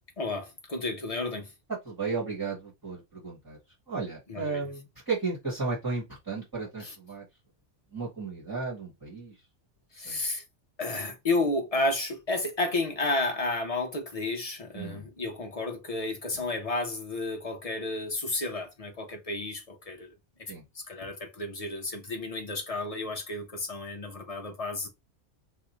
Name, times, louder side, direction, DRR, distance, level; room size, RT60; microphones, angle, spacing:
voice 1, 0.2-1.5 4.3-4.6 6.8-7.0 9.9-10.4 10.8-20.1 20.4-24.9, left 2 dB, 45° left, 0.5 m, -32 dB
voice 2, 1.8-3.6 3.9-7.2 7.9-9.3 9.9-10.2 14.7-15.1 20.5-20.6, right 4 dB, 20° right, 1.1 m, -34 dB
2.7 x 2.4 x 4.1 m
omnidirectional pair, 1.2 m